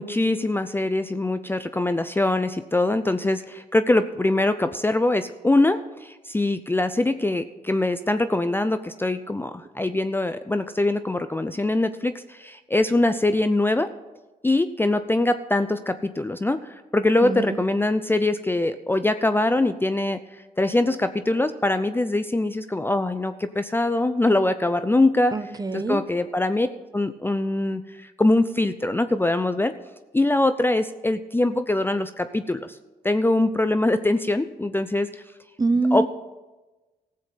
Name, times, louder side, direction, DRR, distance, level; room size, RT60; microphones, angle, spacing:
voice 1, 0.0-13.9 14.4-20.2 20.6-25.3 25.7-26.7 26.9-29.7 30.1-32.8 33.0-35.2 35.9-36.1, left 2 dB, 10° left, 10 dB, 0.5 m, -23 dB
voice 2, 17.2-17.6 25.3-26.0 35.6-36.1, right 3 dB, 20° right, 12 dB, 0.8 m, -24 dB
15.0 x 7.6 x 5.7 m, 1.1 s
cardioid pair, 70°, 17 cm